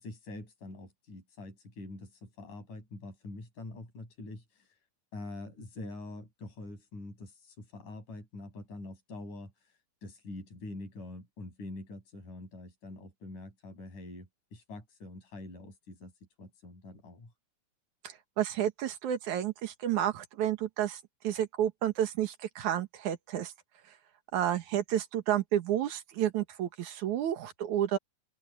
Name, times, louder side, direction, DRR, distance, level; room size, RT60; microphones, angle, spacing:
voice 1, 0.0-4.8 5.1-16.1 16.4-17.3, left 2 dB, 65° left, 9.3 m, -45 dB
voice 2, 18.0-23.5 24.3-28.0, right 11 dB, 65° right, 2.7 m, -31 dB
open air
omnidirectional pair, 3.9 m